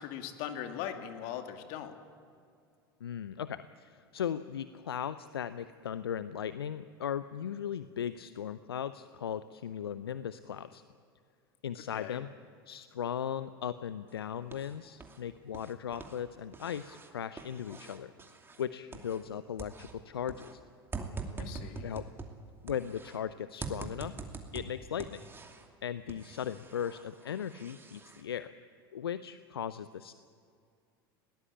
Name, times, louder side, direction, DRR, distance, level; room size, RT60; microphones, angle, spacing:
voice 1, 0.0-1.9 11.9-12.2 21.4-21.9, left 10 dB, 60° left, 6 dB, 2.2 m, -40 dB
voice 2, 3.0-10.8 11.6-12.3 12.7-18.1 18.6-20.6 21.8-22.1 22.6-24.1 24.5-25.2 25.8-28.5 28.9-30.1, left 9 dB, 80° left, 14 dB, 0.6 m, -37 dB
sound 1, 14.1-15.2 15.5-19.3 19.6-23.2 23.6-25.7 26.1-28.2, right 4 dB, 20° right, 2.6 m, -45 dB
21.0 x 18.5 x 8.6 m, 2.4 s
hypercardioid pair, 80°, 13 cm